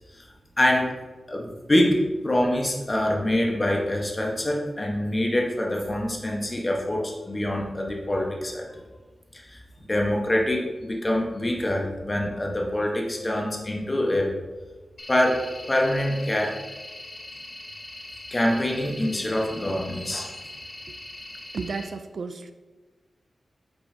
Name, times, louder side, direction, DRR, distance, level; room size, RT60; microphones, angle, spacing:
voice 1, 0.6-0.9 1.3-8.6 9.3-9.6 9.9-14.4 15.1-16.6 18.3-20.3, left 1 dB, 25° left, -1 dB, 1.1 m, -25 dB
sound 1, 15.0-21.8, left 1 dB, 45° left, 2.2 m, -41 dB
voice 2, 21.5-22.5, right 4 dB, 70° right, 9 dB, 0.4 m, -32 dB
8.5 x 5.4 x 2.8 m, 1.3 s
wide cardioid pair, 105°, 0 cm